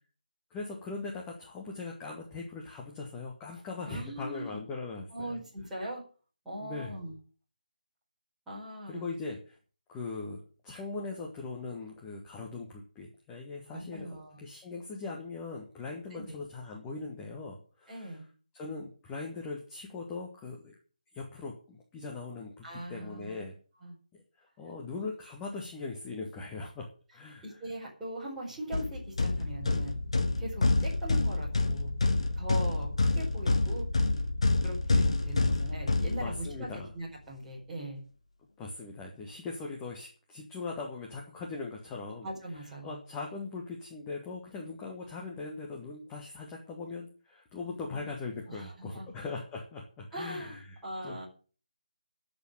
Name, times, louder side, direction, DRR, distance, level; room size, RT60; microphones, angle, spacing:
voice 1, 0.5-5.4 6.6-6.9 8.9-9.6 9.9-18.2 18.5-20.7 21.1-23.5 24.1-27.4 36.2-36.9 38.6-42.3 42.8-51.2, left 3 dB, 10° left, -2 dB, 1.4 m, -40 dB
voice 2, 3.8-4.6 5.1-6.0 6.4-7.2 8.5-9.1 13.7-14.4 16.1-16.4 17.9-18.2 22.6-23.4 23.8-24.0 27.4-30.0 30.4-31.9 32.4-33.9 34.6-38.0 42.2-43.0 47.9-48.1 48.5-49.1 50.1-51.2, right 1 dB, 5° right, -8 dB, 4.7 m, -40 dB
sound 1, 28.7-36.7, left 2 dB, 45° left, 1.6 m, -28 dB
12.5 x 6.7 x 7.9 m, 0.39 s
figure-of-eight pair, 155°, 4 cm